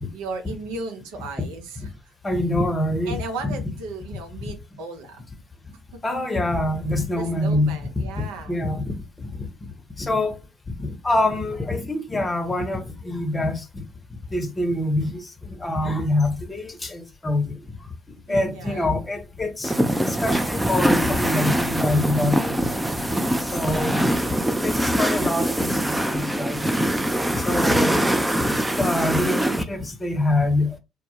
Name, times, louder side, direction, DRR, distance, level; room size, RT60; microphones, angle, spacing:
voice 1, 0.1-2.1 3.1-5.2 5.9-6.0 7.1-8.6 18.3-18.9 23.6-24.1 27.2-27.6, right 3 dB, 70° right, 0.5 m, -36 dB
voice 2, 2.2-3.5 6.0-7.8 8.2-9.5 10.0-10.4 10.8-13.8 14.3-17.5 18.3-19.8 20.0-22.7 23.4-24.3 24.6-26.6 27.3-28.0 28.5-30.8, left 1 dB, 25° left, 0.7 m, -25 dB
sound 1, 19.6-29.6, right 1 dB, 5° right, 0.4 m, -23 dB
2.1 x 2.0 x 2.9 m
figure-of-eight pair, 50°, 0 cm